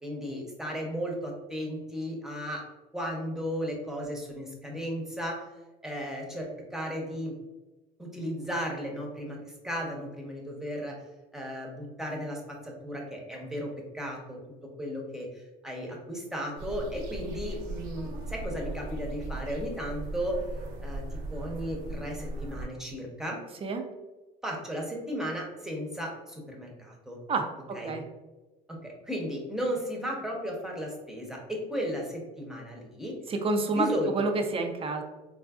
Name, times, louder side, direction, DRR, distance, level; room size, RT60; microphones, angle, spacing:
voice 1, 0.0-2.6 2.9-5.4 5.8-7.3 8.0-10.9 11.3-14.4 14.8-20.4 20.8-21.0 21.3-23.4 24.4-27.2 27.7-27.9 28.7-33.1 33.7-34.2, equal, ahead, -1 dB, 0.9 m, -35 dB
sound 1, 16.6-22.7, right 2 dB, 70° right, 0.7 m, -38 dB
voice 2, 27.3-28.1 33.3-33.9 34.1-35.0, right 3 dB, 30° right, 4 dB, 0.5 m, -29 dB
3.9 x 2.6 x 2.3 m, 1.1 s
supercardioid pair, 95°, 19 cm